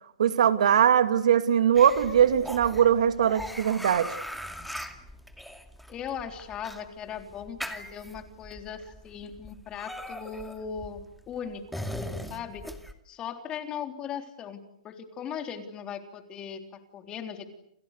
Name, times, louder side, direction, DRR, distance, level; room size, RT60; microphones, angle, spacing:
voice 1, 0.2-4.2, right 9 dB, 75° right, 10 dB, 2.6 m, -21 dB
sound 1, 1.7-12.9, equal, ahead, 2.4 m, -40 dB
voice 2, 5.9-12.7 13.1-14.6 14.8-17.5, left 7 dB, 20° left, 6 dB, 3.5 m, -38 dB
29.0 x 28.5 x 6.7 m, 0.75 s
hypercardioid pair, 150°, 4 cm